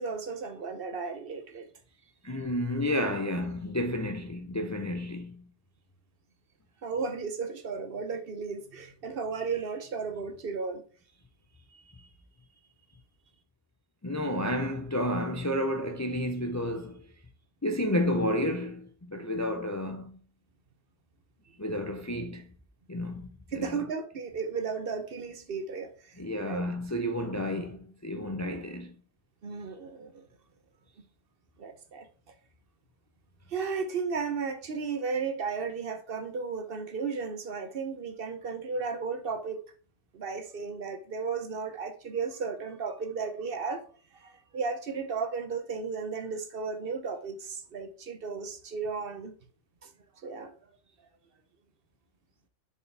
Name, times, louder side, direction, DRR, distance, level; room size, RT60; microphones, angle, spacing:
voice 1, 0.0-1.7 6.8-10.8 23.5-26.2 26.4-26.7 29.4-30.3 31.6-32.1 33.5-39.6 40.1-43.8 44.1-49.3 49.8-49.9 50.2-50.5, right 5 dB, 55° right, 1.0 m, -34 dB
voice 2, 2.2-5.4 14.0-17.0 17.6-20.2 21.6-22.5 22.9-23.6 26.2-28.9, left 1 dB, 20° left, 0.4 m, -31 dB
6.9 x 4.8 x 3.3 m
omnidirectional pair, 1.2 m